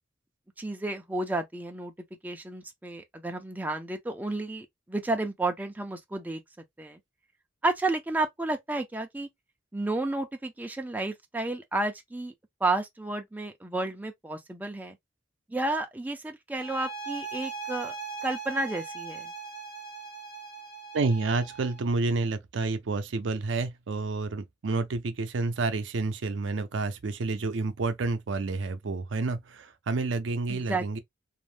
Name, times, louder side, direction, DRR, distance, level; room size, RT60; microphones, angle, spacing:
voice 1, 0.6-1.9 2.2-6.4 6.8-7.0 7.6-9.3 9.7-12.3 12.6-15.0 15.5-17.9 18.2-19.3 30.5-31.0, right 2 dB, 10° right, 0.3 m, -31 dB
sound 1, 16.6-21.8, right 5 dB, 50° left, 0.6 m, -39 dB
voice 2, 20.9-31.0, right 3 dB, 70° right, 0.5 m, -29 dB
2.5 x 2.1 x 3.1 m
head